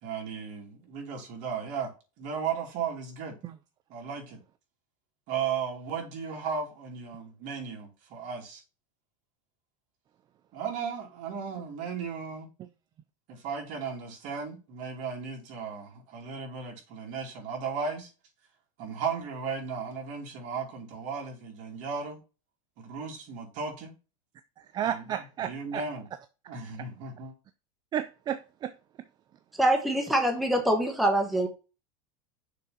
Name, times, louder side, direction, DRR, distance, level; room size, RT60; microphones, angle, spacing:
voice 1, 0.0-3.4 3.9-4.4 5.3-8.6 10.5-12.5 13.3-18.1 18.8-22.2 22.8-23.9 24.8-26.1 26.5-27.3, right 6 dB, 50° right, 2.8 m, -35 dB
voice 2, 24.7-25.8 27.9-28.7, right 10 dB, 25° right, 0.4 m, -32 dB
voice 3, 29.6-31.5, right 1 dB, ahead, 1.0 m, -24 dB
6.7 x 3.7 x 5.7 m
supercardioid pair, 150°, 17 cm